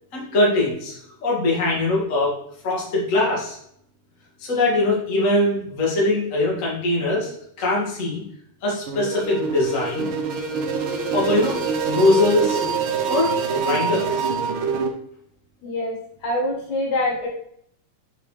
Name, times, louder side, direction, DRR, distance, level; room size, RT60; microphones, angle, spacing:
voice 1, 0.1-2.3 2.6-3.6 4.4-7.3 7.6-8.2 8.6-10.1 11.1-11.6 11.9-12.6 13.1-14.2, left 2 dB, 30° left, -4 dB, 2.0 m, -21 dB
sound 1, 8.9-14.9, right 5 dB, 85° right, 1.1 m, -25 dB
voice 2, 15.6-17.3, left 1 dB, 75° left, -2 dB, 3.1 m, -25 dB
7.0 x 6.8 x 3.3 m, 0.70 s
omnidirectional pair, 3.5 m